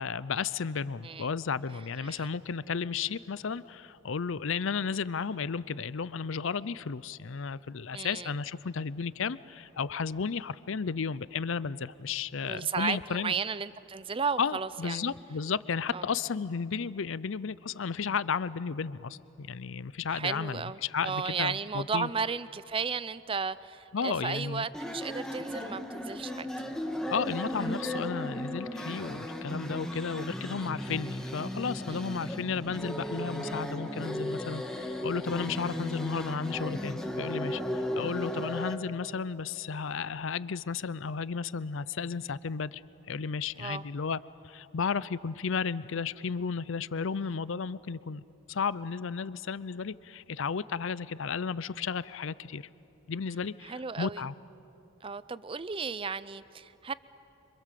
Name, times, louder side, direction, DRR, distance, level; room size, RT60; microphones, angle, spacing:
voice 1, 0.0-13.3 14.4-22.1 23.9-24.7 27.1-37.6 38.0-42.8 43.1-44.2 44.4-48.2 48.5-52.7 53.1-54.3, left 5 dB, 65° left, 0.5 m, -33 dB
voice 2, 7.9-8.3 12.4-15.2 15.9-16.0 20.1-26.5 31.9-32.0 43.6-43.8 53.6-54.2 55.0-56.9, right 5 dB, 25° right, 0.5 m, -34 dB
sound 1, 24.7-38.7, left 1 dB, 5° left, 1.5 m, -35 dB
28.0 x 25.5 x 7.6 m
head